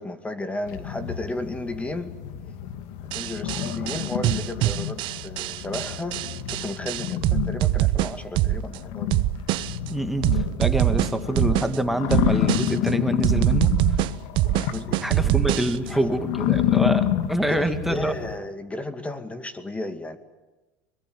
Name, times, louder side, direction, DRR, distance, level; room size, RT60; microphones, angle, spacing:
voice 1, 0.0-2.2 3.0-9.1 14.5-15.5 15.9-16.2 17.5-20.2, left 2 dB, 15° left, 10 dB, 2.2 m, -34 dB
sound 1, 0.7-18.4, left 11 dB, 75° left, 1.9 m, -29 dB
sound 2, 3.1-8.8 9.1-9.9 10.2-11.8 12.1-12.9 13.2-15.9, right 16 dB, 60° right, 0.9 m, -24 dB
voice 2, 9.9-10.3 10.6-13.7 15.0-18.2, right 1 dB, ahead, 7 dB, 2.1 m, -26 dB
24.0 x 21.5 x 9.3 m, 1.1 s
supercardioid pair, 115°, 9 cm